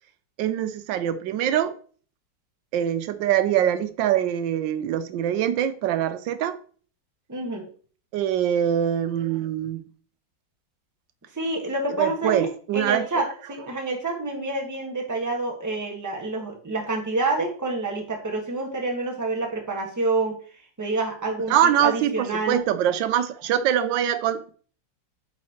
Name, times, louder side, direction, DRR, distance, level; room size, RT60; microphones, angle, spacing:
voice 1, 0.4-1.7 2.7-6.6 8.1-9.8 12.0-13.1 21.4-24.5, right 10 dB, 90° right, 1.3 m, -23 dB
voice 2, 7.3-7.7 11.3-20.4 20.8-22.6, right 2 dB, 10° right, 1.2 m, -28 dB
8.4 x 4.9 x 2.9 m
omnidirectional pair, 2.0 m